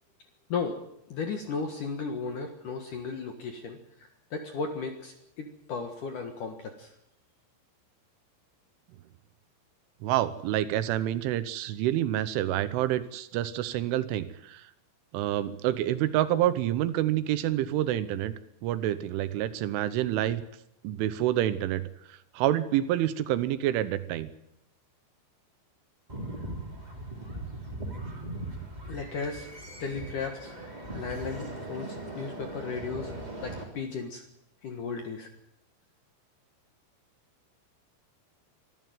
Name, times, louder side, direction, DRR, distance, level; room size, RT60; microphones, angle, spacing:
voice 1, 1.1-3.8 4.3-6.9 28.9-29.5 29.8-30.6 30.9-33.1 33.4-34.2 34.6-35.3, left 5 dB, 60° left, 5 dB, 2.3 m, -35 dB
voice 2, 10.0-14.6 15.1-18.3 18.6-20.4 20.8-21.8 22.1-24.3, right 13 dB, 80° right, 14 dB, 3.3 m, -28 dB
sound 1, 26.1-33.6, right 1 dB, 10° right, 3.0 m, -39 dB
24.0 x 14.0 x 9.2 m, 0.80 s
omnidirectional pair, 5.7 m